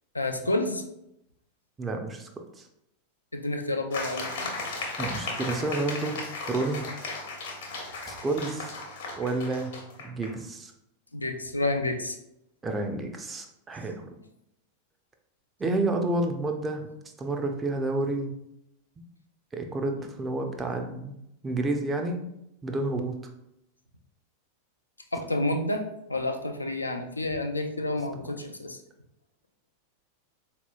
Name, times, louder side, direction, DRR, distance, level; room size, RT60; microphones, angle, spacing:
voice 1, 0.1-0.8 3.3-4.6 11.1-12.2 25.1-28.8, left 2 dB, 80° left, 5 dB, 0.4 m, -29 dB
voice 2, 1.8-2.3 2.6-2.7 5.0-6.2 6.5-6.9 8.1-8.7 9.2-9.7 10.0-10.7 12.6-14.1 15.6-16.9 17.2-18.3 19.5-22.2 22.6-23.2, right 2 dB, 15° right, 4 dB, 0.5 m, -30 dB
sound 1, 3.9-10.3, left 3 dB, 55° left, 0.8 m, -36 dB
4.0 x 2.8 x 2.3 m, 0.82 s
figure-of-eight pair, 90°, 0 cm